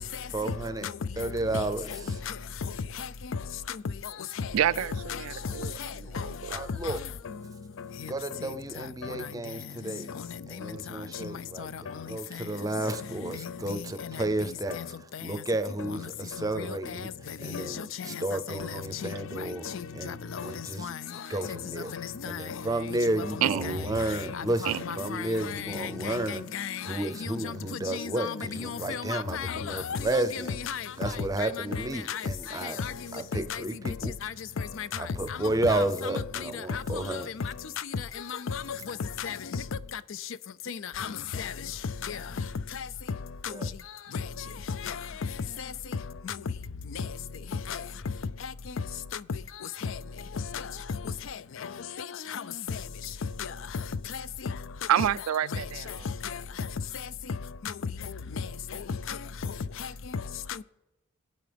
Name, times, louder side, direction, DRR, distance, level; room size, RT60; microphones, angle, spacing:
voice 1, 0.3-0.9 1.2-1.9 6.5-7.0 8.0-10.1 10.5-14.8 15.2-17.1 17.4-19.7 19.9-21.0 21.3-21.9 22.2-26.5 26.9-30.6 31.0-32.8 33.1-34.1 35.0-37.3 43.5-43.7, right 2 dB, 15° right, 0.6 m, -32 dB
voice 2, 4.5-5.8 6.2-6.5 23.4-23.9 24.6-24.8 54.9-55.8, right 10 dB, 85° right, 0.3 m, -28 dB
voice 3, 17.5-17.8 18.5-18.7 19.0-19.1 19.4-19.5 20.0-20.5 20.8-20.9 21.5-22.4 23.1-23.7 24.3-26.2 26.5-30.8 31.4-32.2 32.8-32.9 33.5-33.6 34.2-34.3 34.8-34.9 35.7-36.2 36.7-36.8 37.1-37.5 38.5-38.8 39.2-39.6 40.7-41.1 41.4-41.5 42.0-42.2 44.8-44.9 46.3-46.4 47.7-47.8 49.8-49.9 52.3-52.4 53.4-53.5 59.1-59.2, left 7 dB, 65° left, 0.4 m, -35 dB
26.5 x 9.1 x 3.5 m
head